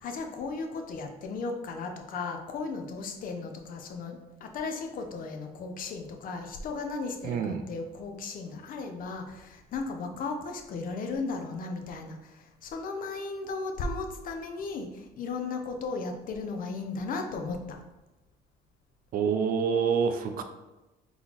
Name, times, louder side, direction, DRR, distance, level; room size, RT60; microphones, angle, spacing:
voice 1, 0.0-12.3 12.6-14.9 15.2-17.8, left 4 dB, 55° left, 4 dB, 0.6 m, -35 dB
voice 2, 7.2-7.6 19.1-20.4, right 6 dB, 60° right, 7 dB, 0.5 m, -27 dB
3.9 x 2.9 x 3.9 m, 1.1 s
cardioid pair, 110°, 17 cm